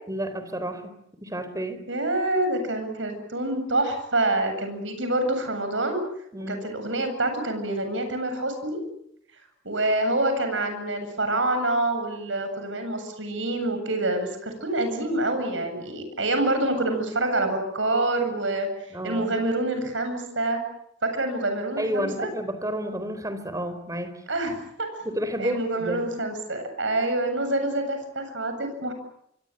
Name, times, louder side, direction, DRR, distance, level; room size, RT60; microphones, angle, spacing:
voice 1, 0.1-0.9 1.2-1.8 6.3-6.6 18.9-19.3 21.8-24.1 25.0-26.0, equal, 15° right, 11 dB, 4.2 m, -30 dB
voice 2, 1.9-6.0 6.5-8.8 9.6-18.7 19.0-20.6 21.0-22.3 24.3-24.9 25.4-28.9, right 2 dB, 75° right, 7 dB, 7.9 m, -26 dB
26.0 x 24.5 x 8.9 m, 0.75 s
head